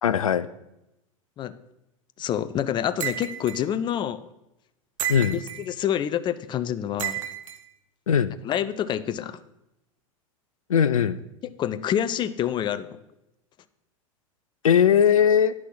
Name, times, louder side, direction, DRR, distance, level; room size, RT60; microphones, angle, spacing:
voice 1, 0.0-0.5 5.1-5.4 8.1-8.4 10.7-11.2 14.6-15.5, left 8 dB, 80° left, 15 dB, 0.5 m, -19 dB
voice 2, 2.2-4.3 5.3-7.2 8.4-9.4 11.4-13.0, left 10 dB, 25° left, 15 dB, 0.5 m, -27 dB
sound 1, 3.0-3.6 5.0-5.7 7.0-7.6, right 12 dB, 65° right, 0.8 m, -31 dB
9.9 x 6.2 x 5.9 m, 0.89 s
figure-of-eight pair, 90°, 17 cm